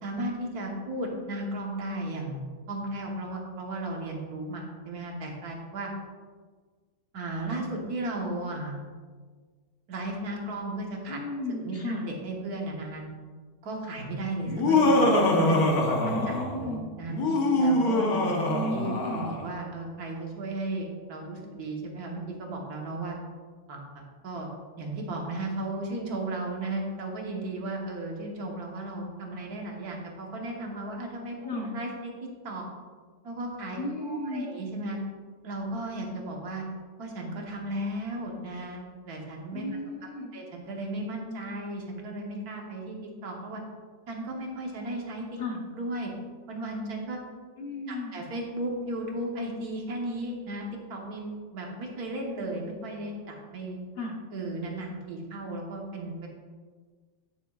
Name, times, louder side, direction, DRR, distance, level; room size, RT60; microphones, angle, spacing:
voice 1, 0.0-2.4 2.7-5.9 7.1-8.8 9.9-11.2 11.5-13.0 13.6-17.1 17.6-23.2 23.7-24.5 24.8-32.6 33.2-35.0 35.4-36.6 37.0-39.6 40.3-43.6 44.1-45.4 45.8-46.1 46.5-47.2 47.9-53.8 54.3-56.3, right 2 dB, 75° right, 0 dB, 1.7 m, -35 dB
voice 2, 11.1-12.1 16.0-16.8 18.5-19.3 31.4-31.7 33.8-34.5 39.5-40.3 45.4-45.6 47.6-48.1 54.0-54.2, left 1 dB, 45° left, -1 dB, 1.0 m, -34 dB
Laughter, 14.5-16.6 17.1-19.4, left 2 dB, 75° left, 1.5 m, -24 dB
9.3 x 6.9 x 2.4 m, 1.5 s
omnidirectional pair, 1.6 m